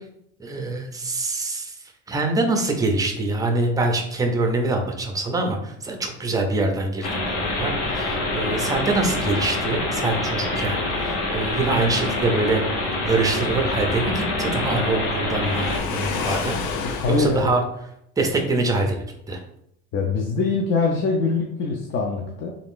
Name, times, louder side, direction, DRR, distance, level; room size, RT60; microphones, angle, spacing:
voice 1, 0.4-1.7 2.1-12.6 13.0-15.6 15.9-17.6 18.2-19.4, right 2 dB, 10° right, 3 dB, 0.4 m, -24 dB
sound 1, 7.0-15.8, left 2 dB, 60° left, 1.1 m, -26 dB
Waves surf, 15.4-17.5, left 5 dB, 90° left, 0.7 m, -29 dB
voice 2, 16.8-17.6 19.9-22.5, left 4 dB, 40° left, 0 dB, 0.5 m, -23 dB
3.5 x 2.5 x 3.6 m, 0.75 s
cardioid pair, 145°, 29 cm